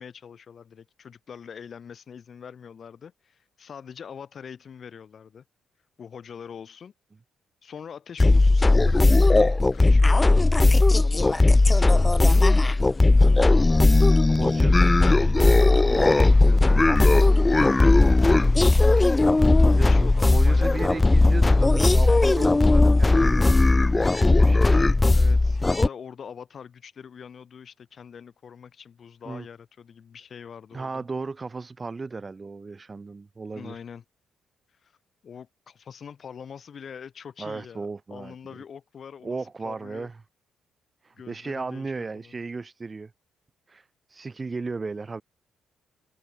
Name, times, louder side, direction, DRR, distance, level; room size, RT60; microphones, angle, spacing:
voice 1, 0.0-5.4 6.0-6.9 7.6-10.5 11.0-14.0 14.3-15.5 19.4-21.7 25.1-31.0 33.5-34.0 34.8-34.9 35.2-40.1 41.1-42.4, left 7 dB, 50° left, 7.4 m, -43 dB
sound 1, 8.2-25.9, left 2 dB, 20° left, 0.5 m, -17 dB
voice 2, 14.4-15.1 15.3-18.3 19.6-24.8 29.3-29.5 30.7-33.8 37.4-38.3 39.2-40.2 41.0-43.1 43.7-45.2, right 4 dB, 30° right, 2.1 m, -35 dB
cardioid pair, 90°, 0 cm